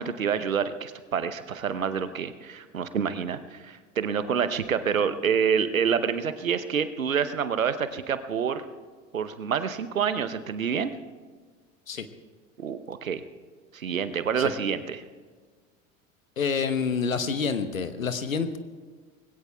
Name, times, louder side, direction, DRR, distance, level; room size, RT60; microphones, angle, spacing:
voice 1, 0.0-8.6 9.1-10.9 12.6-13.2 13.7-15.0, right 7 dB, 85° right, 11 dB, 0.8 m, -27 dB
voice 2, 16.4-18.6, left 5 dB, 90° left, 11 dB, 1.0 m, -28 dB
25.0 x 20.5 x 2.3 m, 1.5 s
figure-of-eight pair, 70°, 40 cm